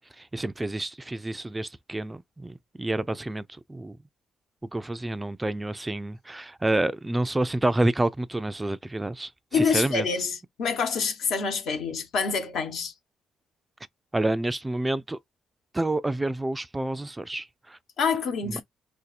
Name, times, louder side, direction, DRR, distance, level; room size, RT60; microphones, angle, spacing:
voice 1, 0.2-4.0 4.7-10.1 14.1-15.2 15.7-17.8 18.5-18.6, right 2 dB, 15° right, 0.3 m, -28 dB
voice 2, 9.5-12.9 18.0-18.6, left 5 dB, 75° left, 1.1 m, -26 dB
2.7 x 2.3 x 4.0 m
cardioid pair, 90°, 0 cm